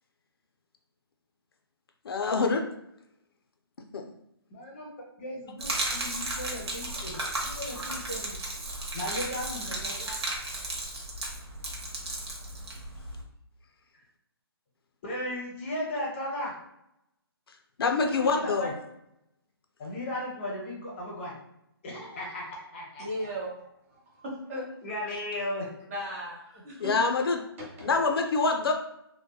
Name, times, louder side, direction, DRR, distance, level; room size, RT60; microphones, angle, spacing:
voice 1, 2.1-2.6 3.9-4.1 17.8-18.7 26.8-27.4 27.8-28.7, left 4 dB, 65° left, 4 dB, 0.4 m, -25 dB
voice 2, 4.5-4.9 5.2-8.3 8.9-10.1 15.0-16.5 18.1-18.7 19.8-21.3 21.8-23.3 24.8-25.8 27.8-28.0, left 1 dB, 30° left, -2 dB, 0.6 m, -36 dB
Gurgling / Liquid, 5.6-13.2, right 2 dB, 80° right, 0.7 m, -34 dB
voice 3, 23.0-23.6 23.9-24.7 25.9-27.2 27.6-27.9, equal, 35° right, -4 dB, 0.8 m, -37 dB
2.7 x 2.1 x 2.2 m, 0.80 s
hypercardioid pair, 160°, 13 cm